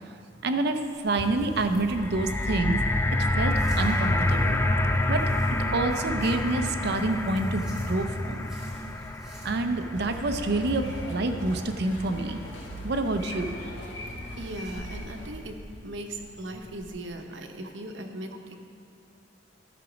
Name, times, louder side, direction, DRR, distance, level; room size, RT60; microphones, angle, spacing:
voice 1, 0.4-2.8 3.4-4.6 5.1-5.3 5.7-8.5 9.4-12.4 12.8-13.6, right 2 dB, 60° right, 7 dB, 0.6 m, -27 dB
sound 1, 0.9-16.9, equal, 5° right, 2.3 m, -46 dB
sound 2, 1.8-12.0 12.7-12.8, left 1 dB, 15° left, 0.4 m, -28 dB
sound 3, 9.9-15.3, equal, 80° left, 1.6 m, -39 dB
voice 2, 14.4-15.6 15.8-18.6, right 1 dB, 85° right, 3 dB, 0.9 m, -38 dB
12.5 x 6.0 x 5.1 m, 2.5 s
head